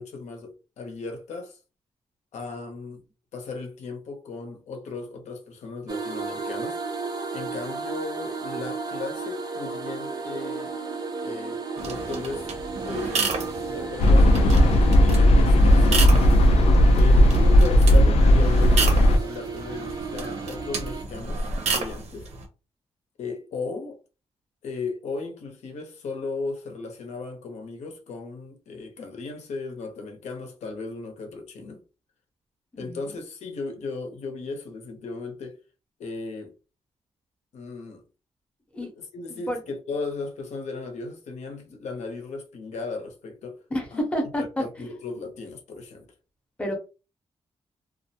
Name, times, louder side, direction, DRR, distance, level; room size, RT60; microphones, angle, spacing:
voice 1, 0.0-1.6 2.3-3.0 3.3-6.8 7.3-10.7 11.2-12.5 12.8-16.1 17.0-22.3 23.2-24.0 24.6-31.8 32.8-35.6 36.0-36.5 37.5-38.0 38.8-43.6 43.9-44.0 44.6-46.1, left 3 dB, 90° left, 0.7 m, -36 dB
sound 1, 5.9-21.0, right 4 dB, 35° right, 0.4 m, -34 dB
sound 2, 11.8-22.4, right 4 dB, 80° right, 0.6 m, -32 dB
sound 3, 14.0-19.2, equal, 65° left, 0.4 m, -16 dB
voice 2, 32.7-33.1 38.7-38.9 39.3-39.6 43.7-44.4 44.8-44.9 46.6-46.7, equal, 10° left, 0.6 m, -29 dB
2.4 x 2.0 x 2.7 m
wide cardioid pair, 180°, 11 cm